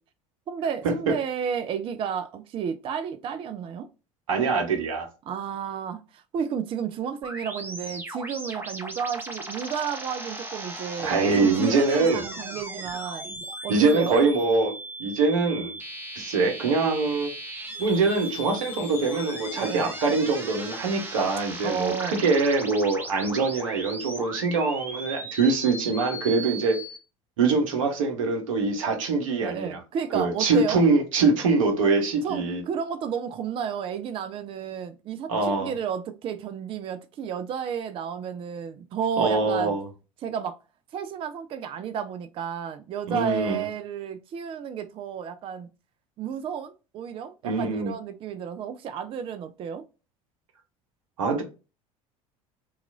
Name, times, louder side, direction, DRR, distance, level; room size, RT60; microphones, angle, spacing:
voice 1, 0.5-3.9 5.3-13.3 13.6-14.2 19.6-19.9 21.6-22.2 29.4-30.8 32.2-39.7 40.2-40.6 40.9-45.7 46.2-49.8, right 7 dB, 30° right, 0.3 m, -32 dB
voice 2, 4.3-5.1 11.0-12.2 13.7-14.7 15.0-15.7 16.1-17.3 17.8-26.8 27.4-29.8 30.1-32.6 35.3-35.7 39.2-39.8 43.1-43.6 47.4-47.9 51.2-51.4, right 4 dB, 70° right, 0.8 m, -23 dB
sound 1, 7.2-27.0, right 1 dB, 10° right, 0.8 m, -37 dB
2.9 x 2.3 x 2.4 m
figure-of-eight pair, 65°, 18 cm